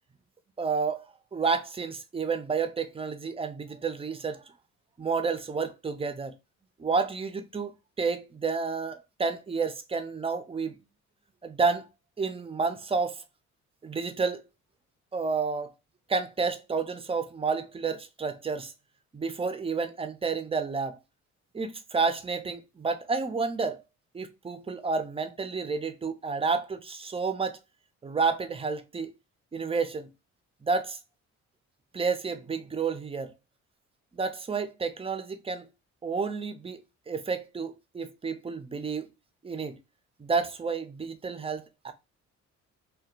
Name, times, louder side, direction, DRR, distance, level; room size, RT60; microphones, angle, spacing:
voice 1, 0.6-1.0 1.3-4.4 5.0-6.3 6.8-7.7 8.0-10.8 11.4-11.9 12.2-13.2 13.8-14.4 15.1-15.7 16.1-18.7 19.1-21.0 21.5-23.8 24.1-27.6 28.0-29.1 29.5-30.1 30.6-31.0 31.9-33.3 34.1-35.7 36.0-36.8 37.1-39.1 39.4-39.8 40.2-41.9, right 4 dB, 20° right, 0.4 m, -30 dB
2.7 x 2.1 x 2.4 m
cardioid pair, 90°, 30 cm